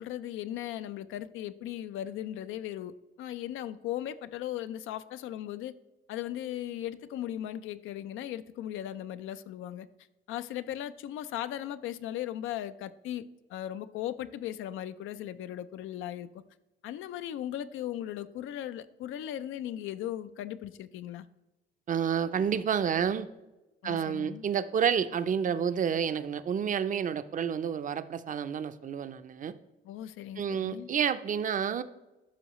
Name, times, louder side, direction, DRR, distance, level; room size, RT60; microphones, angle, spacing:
voice 1, 0.0-5.7 6.1-9.9 10.3-13.2 13.5-16.3 16.8-21.3 23.8-24.4 29.8-30.9, left 12 dB, 85° left, 13 dB, 0.4 m, -37 dB
voice 2, 21.9-23.3 23.8-29.5 30.4-31.8, right 7 dB, 40° right, 12 dB, 0.5 m, -29 dB
12.5 x 5.4 x 3.0 m, 1.1 s
cardioid pair, 90°, 20 cm